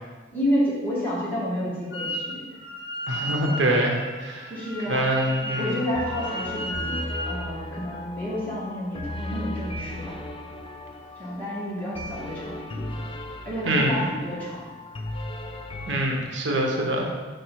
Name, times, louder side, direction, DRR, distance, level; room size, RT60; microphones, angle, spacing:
voice 1, 0.3-2.4 3.2-3.4 4.5-5.0 5.5-7.0 7.3-10.2 11.2-12.9 13.4-14.6, equal, 10° left, -8 dB, 1.7 m, -30 dB
Wind instrument woodwind instrument, 1.9-2.3 2.6-7.4, equal, 55° left, 1.9 m, -34 dB
voice 2, 3.1-4.5 4.9-5.8 13.6-14.0 15.9-17.1, right 1 dB, 75° right, 1 dB, 0.9 m, -24 dB
sound 1, 5.5-16.1, left 1 dB, 30° left, 0.4 m, -36 dB
5.0 x 4.6 x 4.6 m, 1.3 s
head